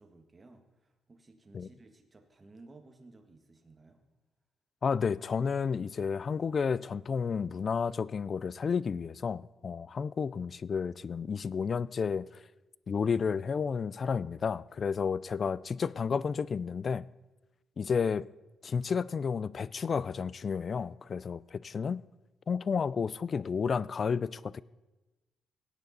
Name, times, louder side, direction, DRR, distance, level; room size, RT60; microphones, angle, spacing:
voice 1, 0.0-4.0, right 2 dB, 25° right, 1.6 m, -56 dB
voice 2, 4.8-12.3 12.9-17.1 17.8-18.2 18.6-22.0 22.5-24.6, left 6 dB, 45° left, 0.3 m, -31 dB
17.0 x 9.1 x 4.1 m
cardioid pair, 90°, 0 cm